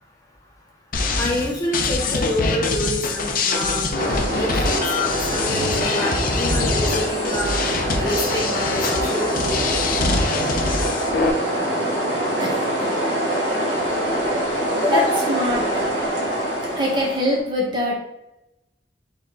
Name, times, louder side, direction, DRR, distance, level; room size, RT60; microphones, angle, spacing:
sound 1, 0.9-11.3, left 3 dB, 50° left, 0.6 m, -24 dB
voice 1, 1.2-7.6 8.0-9.6 14.8-15.2, left 1 dB, 20° left, -2 dB, 0.7 m, -27 dB
sound 2, 4.0-17.4, right 1 dB, 85° right, 1.3 m, -24 dB
voice 2, 12.4-13.0 14.9-15.9 16.7-17.9, equal, 25° right, -3 dB, 1.2 m, -24 dB
4.5 x 3.5 x 3.1 m, 0.88 s
head